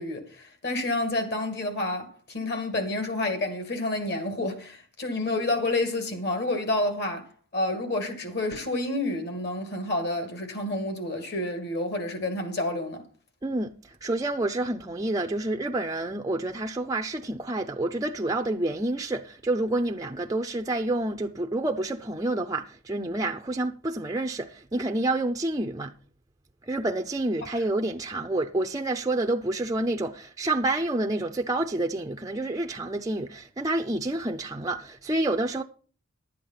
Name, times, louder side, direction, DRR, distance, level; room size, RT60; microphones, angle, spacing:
voice 1, 0.0-7.3 7.5-13.0, left 2 dB, 50° left, 2.3 m, -29 dB
voice 2, 13.4-25.9 26.6-35.6, right 2 dB, 15° right, 0.5 m, -28 dB
11.5 x 8.5 x 5.7 m
head